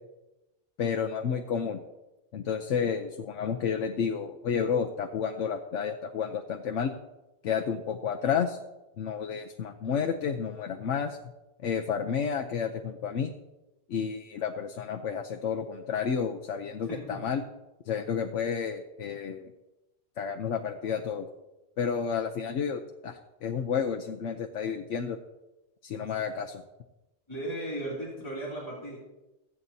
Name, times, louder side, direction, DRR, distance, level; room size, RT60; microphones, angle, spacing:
voice 1, 0.8-1.8 2.3-6.9 7.4-8.6 9.0-11.2 11.6-13.3 13.9-17.4 17.9-19.5 20.2-21.3 21.8-25.2 25.8-26.6, left 7 dB, 85° left, 5 dB, 1.1 m, -31 dB
voice 2, 16.9-17.3 26.2-26.3 27.3-29.0, right 1 dB, 25° left, -6 dB, 2.7 m, -36 dB
23.0 x 8.6 x 2.7 m, 1.0 s
omnidirectional pair, 1.2 m